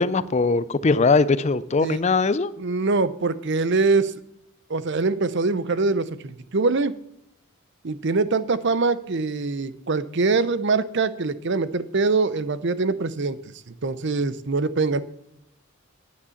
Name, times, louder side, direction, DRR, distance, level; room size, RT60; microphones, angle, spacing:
voice 1, 0.0-2.5, left 4 dB, 30° left, 0.4 m, -20 dB
voice 2, 2.6-4.1 4.7-6.9 7.8-13.4 13.8-15.0, right 3 dB, 55° right, 0.7 m, -23 dB
9.8 x 9.5 x 7.1 m
head